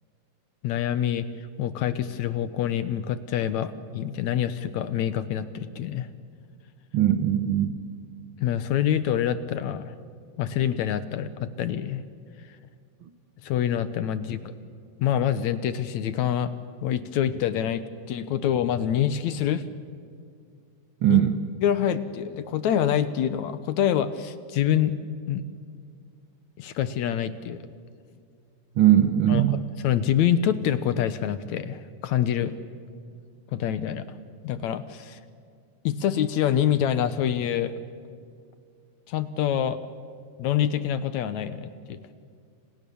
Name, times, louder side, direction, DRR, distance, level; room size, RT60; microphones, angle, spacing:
voice 1, 0.6-6.1 8.4-9.9 10.4-12.0 13.4-14.4 15.0-16.5 16.8-19.7 21.1-21.2 21.6-24.9 25.3-25.4 26.6-27.6 29.3-29.5 29.8-32.5 33.5-34.1 34.4-35.2 35.8-37.7 39.1-39.8 40.4-42.0, left 10 dB, 70° left, 12 dB, 2.0 m, -26 dB
voice 2, 6.9-7.8 21.0-21.4 28.8-29.6, right 11 dB, 85° right, 9 dB, 1.1 m, -20 dB
30.0 x 27.5 x 7.0 m, 2.2 s
omnidirectional pair, 3.9 m